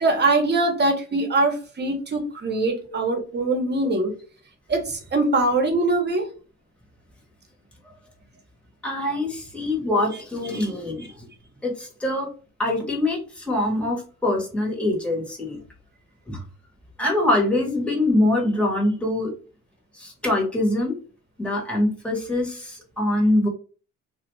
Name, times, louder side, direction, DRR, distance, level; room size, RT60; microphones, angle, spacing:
voice 1, 0.0-4.1 4.7-6.3 10.5-10.7, right 2 dB, 35° right, 4 dB, 0.9 m, -22 dB
voice 2, 8.8-11.3 11.6-12.3 12.6-15.6 16.3-16.4 17.0-19.3 19.9-21.0 21.4-23.5, left 1 dB, 5° left, -1 dB, 1.1 m, -24 dB
2.4 x 2.3 x 3.1 m, 0.37 s
cardioid pair, 90°, 30 cm